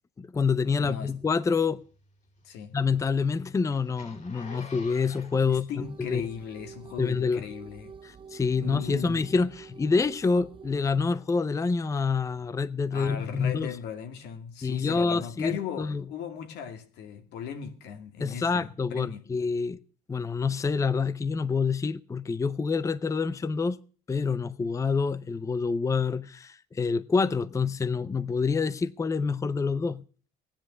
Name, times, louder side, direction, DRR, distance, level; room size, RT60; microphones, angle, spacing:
voice 1, 0.2-1.8 2.7-6.2 7.0-7.4 8.0-13.7 14.6-16.0 18.2-19.8 20.1-23.8 24.1-30.0, left 5 dB, 20° left, 0.6 m, -27 dB
voice 2, 0.8-1.1 2.4-2.7 5.5-7.9 8.5-9.2 12.9-19.2, left 7 dB, 80° left, 2.3 m, -38 dB
Zipper (clothing), 1.8-6.6 7.1-7.2, left 4 dB, 45° left, 3.2 m, -48 dB
sound 1, 5.8-10.8, right 6 dB, 30° right, 0.7 m, -47 dB
16.0 x 10.0 x 6.3 m
cardioid pair, 110°, 17 cm